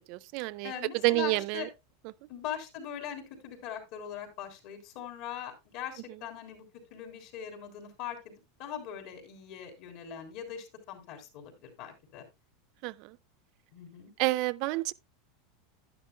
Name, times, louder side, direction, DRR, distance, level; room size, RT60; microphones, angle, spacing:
voice 1, 0.1-0.7 1.0-1.7 12.8-13.2 14.2-14.9, right 22 dB, 55° right, 0.4 m, -29 dB
voice 2, 0.6-1.7 2.3-6.6 6.9-8.3 8.6-12.2 13.7-14.1, left 9 dB, 60° left, 3.3 m, -41 dB
11.0 x 10.5 x 2.2 m
supercardioid pair, 130°, 0 cm